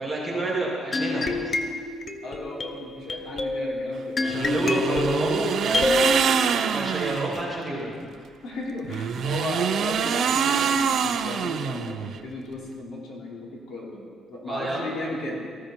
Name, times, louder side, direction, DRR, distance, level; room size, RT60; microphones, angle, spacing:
voice 1, 0.0-1.6 4.2-6.0 6.4-7.9 14.4-14.8, right 2 dB, 5° right, -6 dB, 2.7 m, -29 dB
sound 1, 0.9-6.2, left 2 dB, 25° left, 0.8 m, -27 dB
voice 2, 2.2-5.0 7.7-7.8 8.4-14.0 14.3-15.4, left 1 dB, 55° left, -3 dB, 3.4 m, -35 dB
sound 2, 4.2-7.4 8.8-12.2, right 7 dB, 50° right, 0.6 m, -25 dB
18.5 x 14.5 x 4.5 m, 2.1 s
cardioid pair, 175°, 0 cm